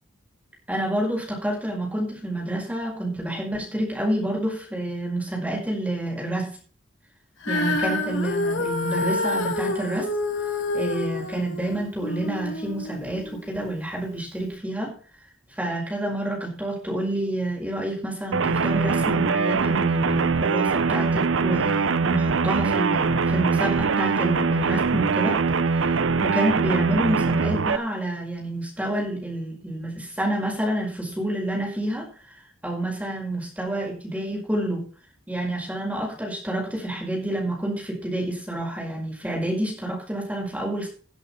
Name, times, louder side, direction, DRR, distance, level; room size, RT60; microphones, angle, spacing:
voice 1, 0.7-6.6 7.5-10.1 10.7-14.9 15.6-32.1 32.6-34.9 35.3-40.9, right 1 dB, 5° right, -2 dB, 5.4 m, -28 dB
Female singing, 7.4-13.8 14.5-14.6, left 2 dB, 70° left, 2.6 m, -28 dB
sound 1, 18.3-27.8, right 4 dB, 75° right, 0.7 m, -22 dB
17.5 x 8.2 x 4.4 m, 0.40 s
head